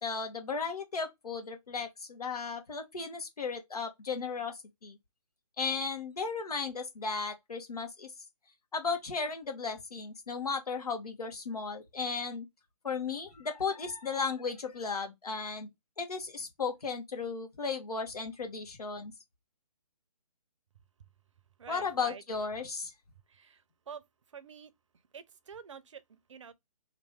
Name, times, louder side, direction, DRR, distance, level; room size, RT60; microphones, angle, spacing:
voice 1, 0.0-4.6 4.8-5.0 5.6-8.1 8.7-12.5 12.8-15.7 16.0-19.1 21.7-22.9, left 5 dB, 70° left, 1.3 m, -35 dB
voice 2, 21.6-22.2 23.3-24.0 24.3-24.7 25.1-26.5, right 6 dB, 50° right, 0.6 m, -48 dB
3.0 x 2.5 x 3.5 m
figure-of-eight pair, 150°, 20 cm